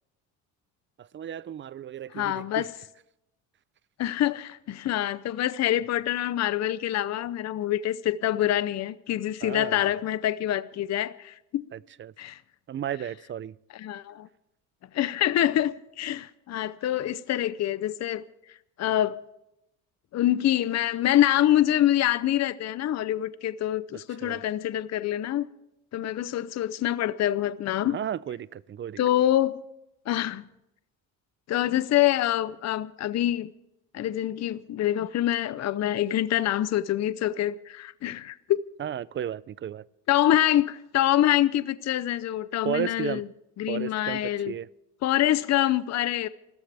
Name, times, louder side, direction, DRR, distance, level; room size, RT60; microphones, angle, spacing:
voice 1, 1.0-2.7 9.4-9.8 11.7-12.1 12.7-13.6 23.9-24.4 27.9-29.0 38.8-39.8 42.6-43.2 43.7-44.2 44.5-44.7, right 10 dB, 35° right, 0.5 m, -34 dB
voice 2, 2.1-2.7 4.0-11.7 12.2-12.4 13.7-14.3 14.9-18.2 18.8-19.2 20.1-25.5 25.9-28.0 29.0-29.6 30.1-30.4 31.5-33.5 33.9-38.6 40.1-43.2 43.6-44.5 45.0-46.3, left 12 dB, 50° left, 0.7 m, -25 dB
28.5 x 13.5 x 3.5 m
cardioid pair, 105°, 36 cm